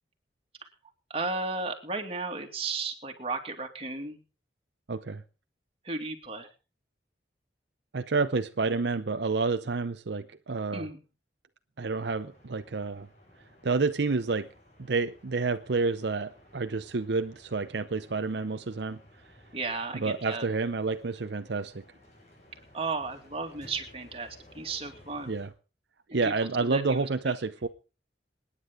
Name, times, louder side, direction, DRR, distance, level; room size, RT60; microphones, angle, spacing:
voice 1, 1.1-4.2 5.8-6.5 10.7-11.0 19.5-20.5 22.7-25.4 26.2-27.3, right 3 dB, 30° right, 2.4 m, -34 dB
voice 2, 4.9-5.2 7.9-10.9 11.8-13.1 13.6-14.5 14.9-19.0 20.0-21.8 25.3-25.5 26.1-27.7, right 4 dB, 70° right, 0.7 m, -29 dB
sound 1, 11.9-25.5, left 1 dB, 40° left, 6.5 m, -57 dB
27.0 x 9.9 x 3.8 m
head